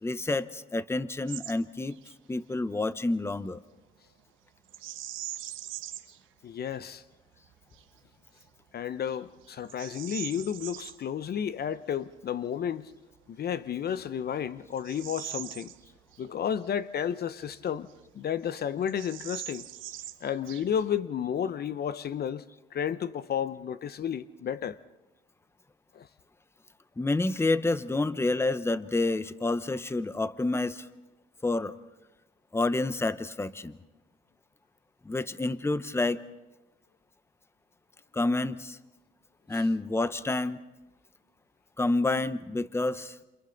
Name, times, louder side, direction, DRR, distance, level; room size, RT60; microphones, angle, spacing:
voice 1, 0.0-2.0 2.3-3.6 27.0-30.9 31.4-31.7 32.5-33.8 35.0-36.2 38.1-38.8 39.5-40.6 41.8-43.2, left 2 dB, 10° left, 0.8 m, -28 dB
Bird vocalization bird call bird song, 1.3-1.6 1.9-2.1 4.7-6.2 6.7-6.8 7.4-7.8 8.4-8.5 9.1-11.0 13.1-13.2 13.8-16.3 16.6-16.7 17.4-18.2 18.4-18.5 18.8-21.0, right 13 dB, 90° right, 1.0 m, -42 dB
voice 2, 6.4-7.0 8.7-12.9 13.3-15.7 16.2-17.9 18.1-19.7 20.2-22.4 22.7-24.8 25.9-26.1 39.5-39.6, left 8 dB, 55° left, 0.7 m, -32 dB
28.5 x 27.5 x 3.9 m
cardioid pair, 90°, 20 cm